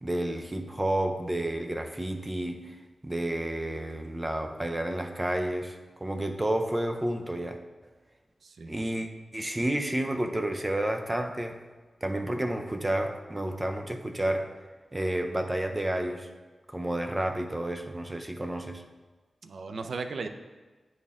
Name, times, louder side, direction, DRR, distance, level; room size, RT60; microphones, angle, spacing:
voice 1, 0.0-2.8 3.0-7.6 8.7-11.6 12.0-14.5 14.9-16.3 16.7-18.8, right 1 dB, 20° right, 5 dB, 0.6 m, -30 dB
voice 2, 8.4-8.8 19.4-20.3, right 4 dB, 80° right, 7 dB, 0.4 m, -36 dB
8.8 x 4.2 x 3.6 m, 1.3 s
wide cardioid pair, 90°, 0 cm